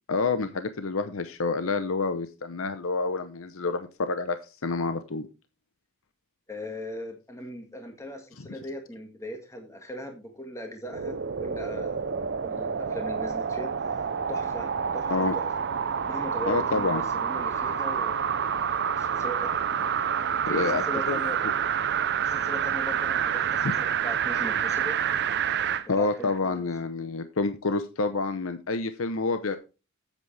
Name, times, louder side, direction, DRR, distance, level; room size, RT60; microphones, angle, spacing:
voice 1, 0.1-5.3 8.4-8.5 15.1-15.3 16.5-17.0 20.5-21.5 23.6-23.7 25.9-29.6, left 3 dB, 65° left, 9 dB, 0.8 m, -28 dB
voice 2, 6.5-13.7 14.3-15.4 16.1-19.5 20.4-21.4 22.2-25.0 26.0-26.7, equal, 15° left, 3 dB, 1.8 m, -39 dB
sound 1, 10.9-25.9 26.3-26.4, right 7 dB, 50° right, 0.6 m, -28 dB
9.4 x 8.2 x 3.3 m, 0.30 s
head